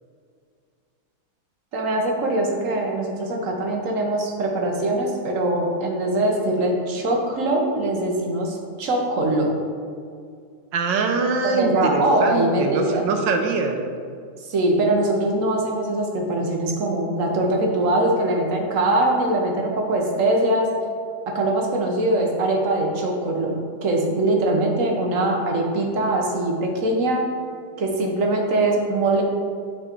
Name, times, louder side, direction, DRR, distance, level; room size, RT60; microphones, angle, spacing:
voice 1, 1.7-9.5 11.4-13.1 14.4-20.7 21.3-27.2 27.8-29.2, right 1 dB, 45° right, 1 dB, 1.2 m, -22 dB
voice 2, 10.7-13.8, right 4 dB, 70° right, 4 dB, 1.4 m, -23 dB
8.6 x 4.9 x 4.5 m, 2.2 s
omnidirectional pair, 2.3 m